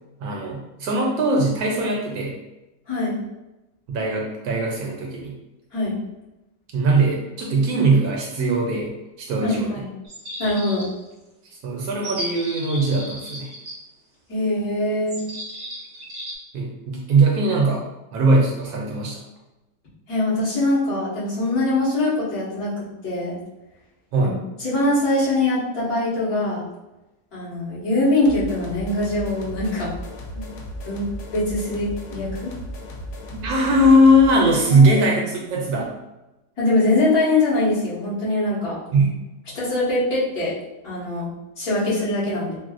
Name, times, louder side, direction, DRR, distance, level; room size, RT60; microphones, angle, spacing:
voice 1, 0.2-2.3 3.9-5.3 6.7-8.9 9.2-9.8 11.6-13.5 16.5-17.8 18.1-19.2 24.1-24.4 33.3-35.9 38.9-39.1, right 1 dB, 70° right, 0 dB, 1.0 m, -20 dB
voice 2, 2.9-3.2 5.7-6.0 9.4-9.9 10.4-10.9 14.3-15.2 20.1-23.4 24.2-24.3 24.6-26.6 27.3-29.9 30.3-30.4 30.8-32.5 34.7-35.0 36.6-38.8 39.5-40.5 40.8-41.3 41.6-42.6, left 2 dB, 55° left, -12 dB, 2.1 m, -23 dB
sound 1, 10.0-11.1 12.0-13.7 15.1-16.4, equal, 40° right, 0.6 m, -34 dB
sound 2, 28.2-34.8, equal, 75° left, 1.1 m, -35 dB
4.6 x 2.1 x 2.4 m, 1.0 s
omnidirectional pair, 1.8 m